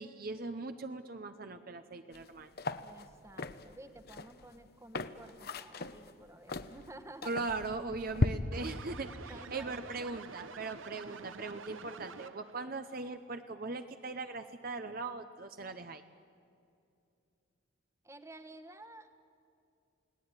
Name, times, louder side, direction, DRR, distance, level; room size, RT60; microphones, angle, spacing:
voice 1, 0.0-2.5 7.2-16.0, right 3 dB, 45° right, 8 dB, 0.8 m, -40 dB
sound 1, 2.1-2.3 2.6-8.3, left 2 dB, 50° left, 0.9 m, -37 dB
voice 2, 2.8-7.3 7.6-7.7 9.3-10.1 18.0-19.1, right 1 dB, 15° right, 8 dB, 1.2 m, -52 dB
sound 2, 8.5-12.7, right 4 dB, 70° right, 1.0 m, -48 dB
29.0 x 18.0 x 9.7 m, 2.6 s
head